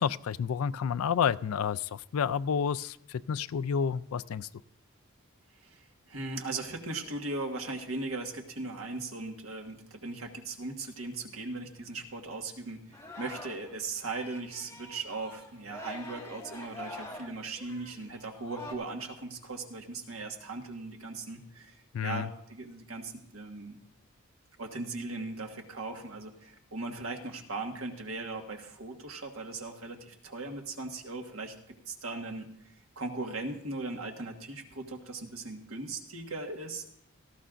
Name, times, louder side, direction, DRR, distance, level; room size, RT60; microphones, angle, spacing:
voice 1, 0.0-4.5 21.9-22.3, left 7 dB, 85° left, 15 dB, 0.4 m, -30 dB
voice 2, 5.6-12.8 13.2-21.8 22.0-23.8 24.6-31.5 31.9-32.5 32.9-36.9, right 3 dB, 80° right, 2 dB, 1.6 m, -38 dB
Singing, 12.9-13.7 14.0-18.7, left 2 dB, 15° left, 1.7 m, -45 dB
17.5 x 13.5 x 2.5 m, 0.73 s
head